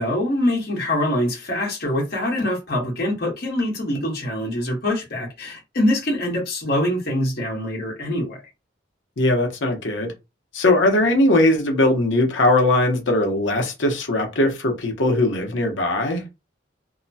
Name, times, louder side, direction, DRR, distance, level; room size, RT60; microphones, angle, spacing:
voice 1, 0.0-8.4, left 1 dB, 55° left, 1.2 m, -24 dB
voice 2, 9.2-10.1 10.5-16.2, left 1 dB, 80° left, 0.9 m, -20 dB
2.8 x 2.1 x 2.7 m
head